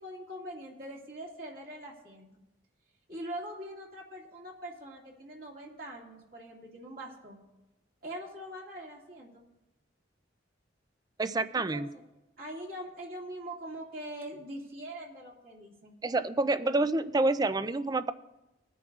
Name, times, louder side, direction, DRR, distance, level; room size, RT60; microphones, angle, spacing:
voice 1, 0.0-2.3 3.1-7.4 8.0-9.4 11.5-11.8 12.4-15.9, right 1 dB, 50° right, -2 dB, 2.3 m, -43 dB
voice 2, 11.2-11.9 16.0-18.1, right 2 dB, 20° right, 12 dB, 0.4 m, -28 dB
21.5 x 10.0 x 2.4 m, 0.98 s
head